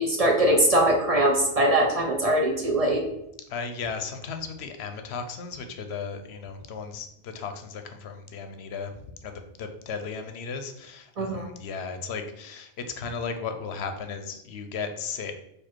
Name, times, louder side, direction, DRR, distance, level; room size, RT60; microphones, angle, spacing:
voice 1, 0.0-3.0 11.2-11.5, right 1 dB, 40° right, 1 dB, 0.6 m, -22 dB
voice 2, 3.5-8.9 9.2-12.7 13.0-15.3, left 5 dB, 80° left, 7 dB, 0.9 m, -35 dB
4.2 x 2.6 x 4.4 m, 0.81 s
omnidirectional pair, 1.1 m